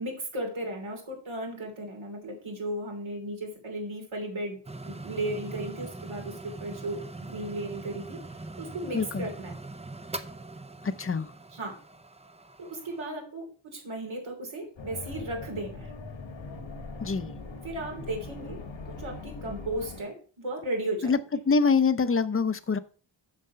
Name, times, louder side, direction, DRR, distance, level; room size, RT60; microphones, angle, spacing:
voice 1, 0.0-4.6 4.8-8.2 8.6-9.5 11.5-11.7 12.6-13.4 13.7-15.9 17.6-18.6 18.9-21.1, right 1 dB, 85° right, 3.2 m, -35 dB
sound 1, 4.6-13.1, right 2 dB, 15° right, 0.5 m, -42 dB
voice 2, 8.9-9.3 10.8-11.3 17.0-17.3 21.0-21.2 21.5-22.8, left 5 dB, 30° left, 0.6 m, -25 dB
sound 2, 14.8-20.0, left 3 dB, 75° left, 1.5 m, -41 dB
7.4 x 6.6 x 5.5 m
wide cardioid pair, 115°, 47 cm